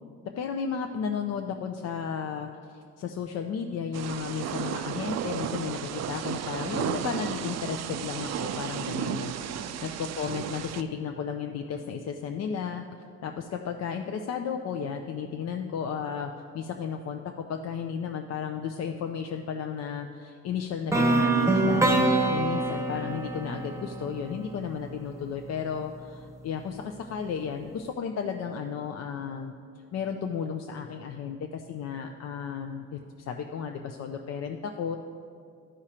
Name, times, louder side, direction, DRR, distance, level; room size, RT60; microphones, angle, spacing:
voice 1, 0.4-12.8 13.2-17.2 17.5-21.9 22.3-29.5 29.9-35.0, left 7 dB, 60° left, 4 dB, 0.5 m, -34 dB
Thunder / Rain, 3.9-10.8, right 9 dB, 60° right, 0.4 m, -33 dB
sound 1, 20.9-24.9, right 2 dB, 10° right, 0.8 m, -25 dB
11.0 x 5.0 x 4.3 m, 2.2 s
cardioid pair, 90°, 30 cm